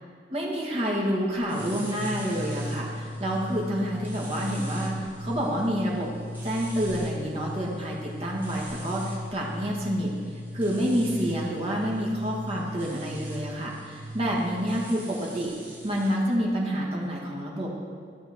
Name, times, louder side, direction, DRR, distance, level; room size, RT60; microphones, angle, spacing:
voice 1, 0.3-6.1 6.4-10.1 10.5-15.5 15.8-17.7, equal, 35° right, -3 dB, 1.7 m, -28 dB
sound 1, 1.4-16.1, left 1 dB, 10° right, 1.5 m, -37 dB
13.5 x 6.1 x 3.6 m, 2.1 s
head